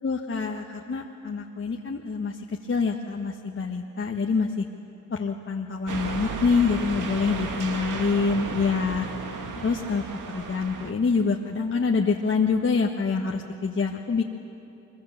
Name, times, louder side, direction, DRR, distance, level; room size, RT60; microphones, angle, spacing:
voice 1, 0.0-4.6 5.1-9.1 9.6-14.2, left 5 dB, 40° left, 1 dB, 1.4 m, -26 dB
sound 1, 5.9-10.9, right 5 dB, 65° right, 2.0 m, -34 dB
24.0 x 23.0 x 7.2 m, 2.8 s
cardioid pair, 75°, 33 cm